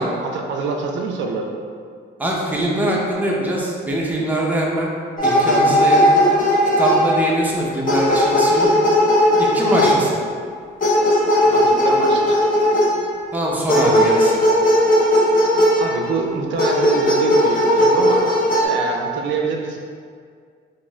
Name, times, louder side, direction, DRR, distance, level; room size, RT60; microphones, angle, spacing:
voice 1, 0.0-1.5 11.4-12.4 15.7-18.3 18.6-19.8, right 4 dB, 70° right, 1 dB, 0.4 m, -25 dB
voice 2, 2.2-4.9 5.2-6.2 6.8-8.7 9.4-10.2 13.3-14.4, right 1 dB, 10° right, -3 dB, 0.5 m, -22 dB
sound 1, 5.2-7.5 7.9-10.2 10.8-13.1 13.7-16.1 16.6-18.6, equal, 45° left, 0.7 m, -16 dB
2.6 x 2.4 x 3.0 m, 2.1 s
cardioid pair, 90°, 20 cm